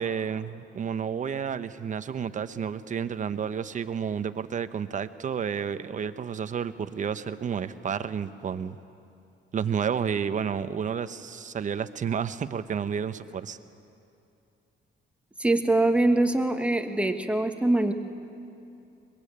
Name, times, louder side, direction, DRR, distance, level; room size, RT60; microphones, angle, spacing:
voice 1, 0.0-8.8 9.5-13.6, right 7 dB, 40° right, 12 dB, 0.9 m, -31 dB
voice 2, 15.4-17.9, right 2 dB, 5° right, 5 dB, 1.4 m, -23 dB
22.5 x 22.0 x 8.8 m, 2.7 s
cardioid pair, 130°, 20 cm